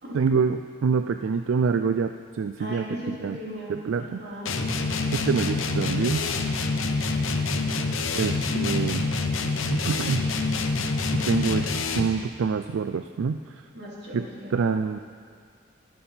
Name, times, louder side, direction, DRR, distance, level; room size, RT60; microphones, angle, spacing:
voice 1, 0.1-3.4 3.7-4.2 5.1-6.2 8.1-9.2 9.7-10.2 11.3-13.7 14.1-14.3 14.5-15.0, right 5 dB, 80° right, 9 dB, 0.4 m, -26 dB
voice 2, 2.6-3.7 4.0-4.6 13.7-14.7, equal, 55° right, -5 dB, 3.1 m, -37 dB
sound 1, 4.5-12.2, left 3 dB, 80° left, 0.9 m, -26 dB
11.0 x 11.0 x 5.6 m, 2.2 s
head